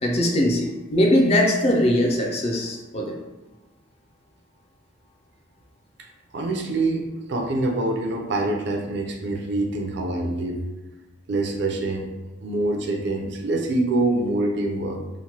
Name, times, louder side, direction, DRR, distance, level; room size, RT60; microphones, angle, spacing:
voice 1, 0.0-3.2, left 1 dB, 35° left, 1 dB, 0.4 m, -21 dB
voice 2, 6.3-10.6 11.3-12.1 12.4-15.0, right 2 dB, 65° right, 2 dB, 0.4 m, -25 dB
3.0 x 2.1 x 2.7 m, 1.1 s
head